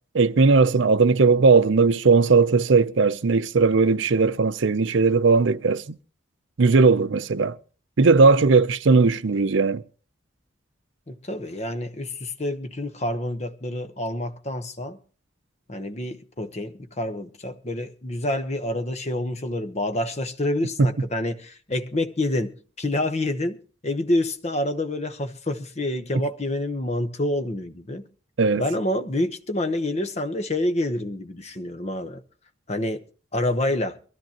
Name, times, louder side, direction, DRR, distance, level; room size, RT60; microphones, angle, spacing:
voice 1, 0.1-6.0 6.6-7.6 8.0-9.8 28.4-28.6, right 4 dB, 70° right, 0.6 m, -18 dB
voice 2, 11.1-15.0 15.7-28.0 28.6-32.2 32.7-33.0 33.3-34.0, left 1 dB, 35° left, 0.9 m, -27 dB
23.0 x 13.5 x 2.9 m
head